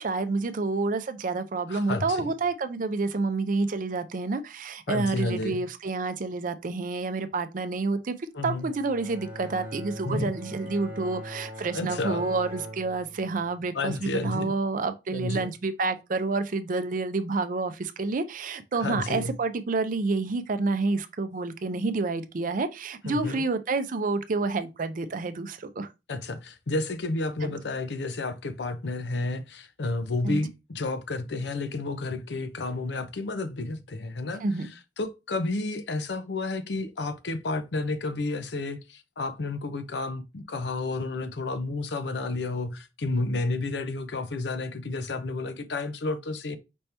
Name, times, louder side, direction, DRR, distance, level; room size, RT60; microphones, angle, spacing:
voice 1, 0.0-8.1 8.4-25.9 27.4-27.5 30.2-30.4 34.4-34.7, right 3 dB, 50° right, 0.5 m, -29 dB
voice 2, 1.7-2.3 4.9-5.6 8.3-8.7 10.0-10.3 11.7-12.2 13.7-14.5 15.1-15.5 18.8-19.3 23.1-23.4 26.1-34.4 35.0-46.6, left 2 dB, 75° left, 0.6 m, -31 dB
Bowed string instrument, 8.5-13.7, equal, 10° right, 1.3 m, -41 dB
5.3 x 2.8 x 3.3 m
head